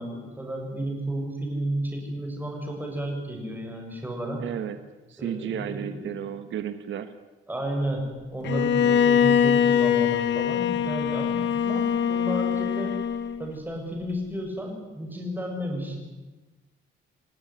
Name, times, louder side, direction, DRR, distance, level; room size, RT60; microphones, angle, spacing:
voice 1, 0.0-4.4 5.2-6.2 7.5-13.0 13.4-16.0, right 1 dB, 10° right, 1 dB, 7.3 m, -32 dB
voice 2, 4.4-4.8 5.1-7.1, right 9 dB, 70° right, 10 dB, 1.5 m, -33 dB
Bowed string instrument, 8.4-13.5, left 8 dB, 60° left, 1.3 m, -23 dB
28.5 x 18.0 x 9.8 m, 1.2 s
cardioid pair, 150°, 21 cm